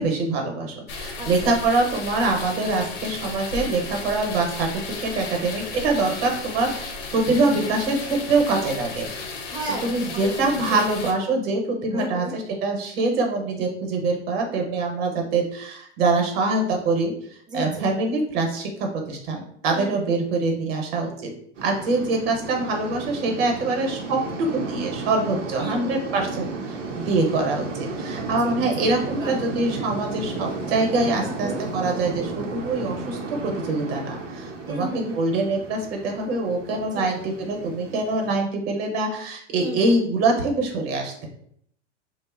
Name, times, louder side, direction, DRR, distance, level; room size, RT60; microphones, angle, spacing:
voice 1, 0.0-9.1 9.8-17.1 17.5-21.3 21.6-41.3, right 3 dB, 55° right, 2 dB, 0.8 m, -24 dB
sound 1, 0.9-11.1, left 4 dB, 50° left, 0.6 m, -34 dB
voice 2, 1.2-1.5 9.5-9.9 10.2-10.8 11.9-12.3 17.5-17.9 19.7-19.9 25.6-26.0 28.4-28.9 29.2-29.4 31.1-31.6 34.6-35.4 36.9-37.2 39.6-40.0, right 2 dB, 10° right, -1 dB, 0.5 m, -33 dB
sound 2, 21.5-38.4, right 3 dB, 85° right, 0.6 m, -33 dB
2.7 x 2.0 x 2.4 m, 0.66 s
hypercardioid pair, 105°, 36 cm